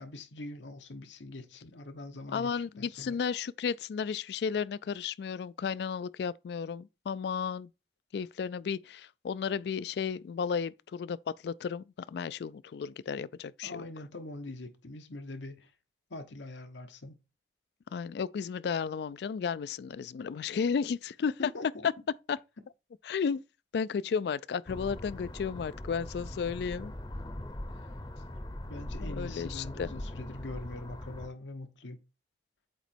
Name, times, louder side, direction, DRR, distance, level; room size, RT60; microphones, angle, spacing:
voice 1, 0.0-3.2 13.6-15.7 16.1-17.2 21.4-21.9 28.7-32.0, left 2 dB, 90° left, 1.0 m, -43 dB
voice 2, 2.3-7.7 8.1-13.9 17.9-21.5 22.3-22.4 23.0-23.4 23.7-26.9 29.0-29.9, left 6 dB, 65° left, 0.3 m, -33 dB
sound 1, 24.7-31.3, left 1 dB, 25° left, 0.7 m, -41 dB
8.2 x 3.0 x 4.4 m
head